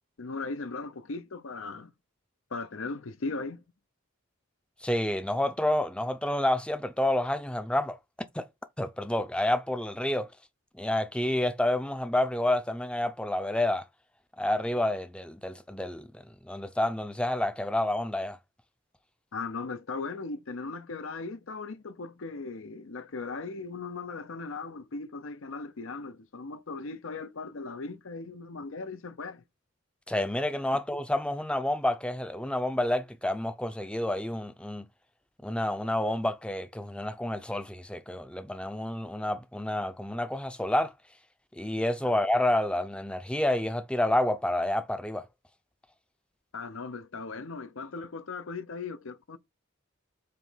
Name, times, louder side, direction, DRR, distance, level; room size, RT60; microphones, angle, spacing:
voice 1, 0.2-1.9 2.5-3.6 19.3-29.4 46.5-49.4, left 3 dB, 75° left, 0.7 m, -38 dB
voice 2, 4.8-8.0 8.3-8.5 8.8-10.3 10.7-13.8 14.4-18.4 30.1-34.9 35.4-40.9 41.5-45.3, left 1 dB, 5° left, 0.5 m, -29 dB
7.6 x 3.1 x 5.6 m
head